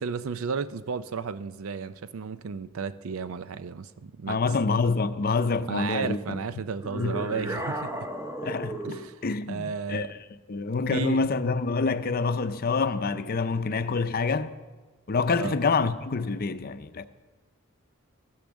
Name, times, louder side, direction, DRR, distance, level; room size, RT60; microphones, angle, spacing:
voice 1, 0.0-4.4 5.7-7.9 8.8-10.1 10.9-11.2 15.4-15.6, right 5 dB, 75° right, 0.5 m, -33 dB
voice 2, 4.3-6.4 6.9-7.1 8.4-8.8 9.2-10.1 10.5-14.5 15.1-17.1, left 4 dB, 45° left, 0.6 m, -26 dB
sound 1, 6.8-9.1, right 1 dB, 10° right, 0.9 m, -34 dB
14.0 x 10.5 x 6.3 m
head